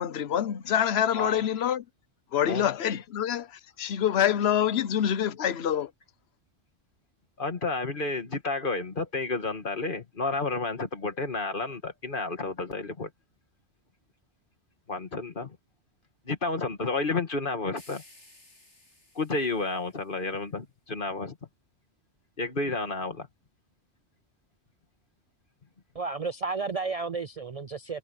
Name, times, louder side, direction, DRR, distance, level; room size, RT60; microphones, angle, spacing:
voice 1, 0.0-1.8 2.3-3.5 3.8-5.9, left 9 dB, 65° left, 1.1 m, -26 dB
voice 2, 1.1-1.5 2.5-2.7 7.4-13.1 14.9-15.6 16.3-18.0 19.2-21.4 22.4-23.3, left 3 dB, 50° left, 2.0 m, -31 dB
sound 1, 17.8-20.2, left 2 dB, 90° left, 7.7 m, -56 dB
voice 3, 25.9-28.0, right 4 dB, 45° right, 0.5 m, -32 dB
omnidirectional pair, 1.2 m